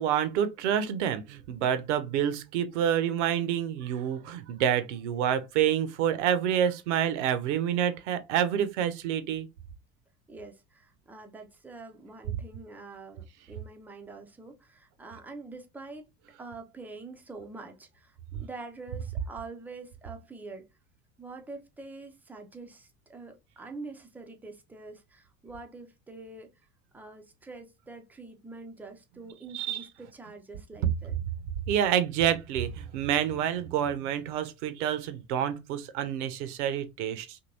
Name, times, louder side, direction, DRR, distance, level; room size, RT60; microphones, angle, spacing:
voice 1, 0.0-9.5 29.5-29.8 31.7-37.4, right 9 dB, 60° right, 0.6 m, -28 dB
voice 2, 10.3-16.1 16.4-20.7 21.2-26.5 26.9-31.2, right 3 dB, 5° right, 0.3 m, -45 dB
2.8 x 2.6 x 2.7 m
figure-of-eight pair, 70°, 40 cm